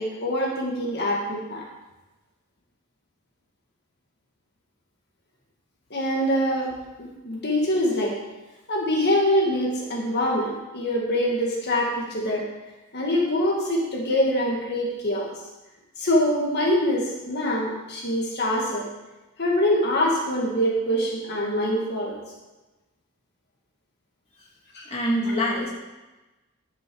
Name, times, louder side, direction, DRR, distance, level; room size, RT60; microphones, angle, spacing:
voice 1, 0.0-1.7 5.9-8.2 8.7-12.5 12.9-15.3 16.0-18.9 19.4-22.2 24.7-24.9 25.3-25.4, equal, 45° left, -1 dB, 1.8 m, -24 dB
voice 2, 24.9-25.7, equal, 25° left, -4 dB, 1.9 m, -24 dB
11.0 x 7.0 x 6.2 m, 1.1 s
head